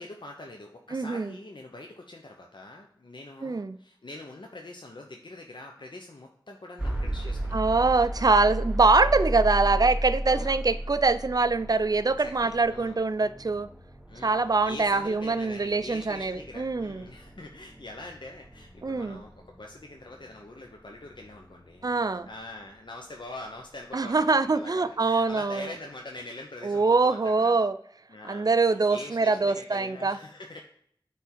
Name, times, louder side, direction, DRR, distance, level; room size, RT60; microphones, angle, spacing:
voice 1, 0.0-7.9 10.2-10.6 12.2-13.0 14.1-21.9 22.3-27.6 28.1-30.6, left 2 dB, 70° left, 1 dB, 0.8 m, -44 dB
voice 2, 0.9-1.3 3.4-3.8 7.5-13.7 14.2-17.0 18.8-19.2 21.8-22.3 23.9-25.7 26.6-27.7 28.3-30.2, right 3 dB, 50° right, 12 dB, 0.4 m, -24 dB
sound 1, 6.8-22.7, right 1 dB, 10° right, 1.0 m, -35 dB
8.2 x 3.5 x 4.4 m, 0.65 s
wide cardioid pair, 40°, 8 cm